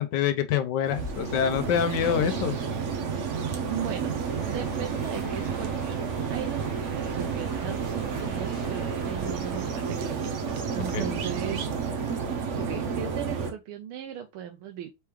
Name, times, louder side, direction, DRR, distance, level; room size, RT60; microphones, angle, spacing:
voice 1, 0.0-2.6 10.9-11.1, left 9 dB, 70° left, 1.1 m, -26 dB
sound 1, 0.8-13.5, right 6 dB, 65° right, 0.7 m, -31 dB
voice 2, 3.7-4.2 4.5-6.0 6.3-10.4 10.7-11.7 12.1-14.9, right 10 dB, 85° right, 1.5 m, -37 dB
sound 2, 4.2-9.8, right 1 dB, 45° left, 1.9 m, -46 dB
4.5 x 3.4 x 3.0 m
omnidirectional pair, 2.3 m